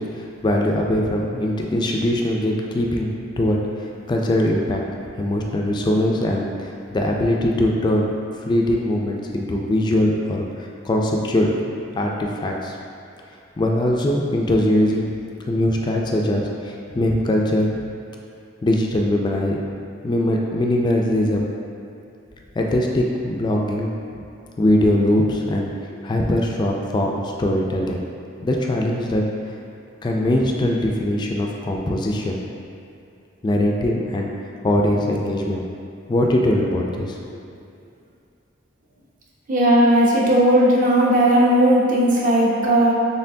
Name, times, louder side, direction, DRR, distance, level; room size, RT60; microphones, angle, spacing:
voice 1, 0.0-4.8 5.2-8.1 8.5-11.6 11.9-12.8 13.6-15.1 15.5-17.7 18.6-19.6 20.0-21.5 22.6-23.9 24.6-25.7 26.0-28.0 28.4-29.2 30.0-32.4 33.4-34.3 34.6-35.7 36.1-37.4, left 1 dB, 25° left, -1 dB, 0.3 m, -21 dB
voice 2, 39.5-42.9, right 1 dB, 45° right, -4 dB, 0.6 m, -16 dB
4.3 x 3.4 x 2.6 m, 2.5 s
head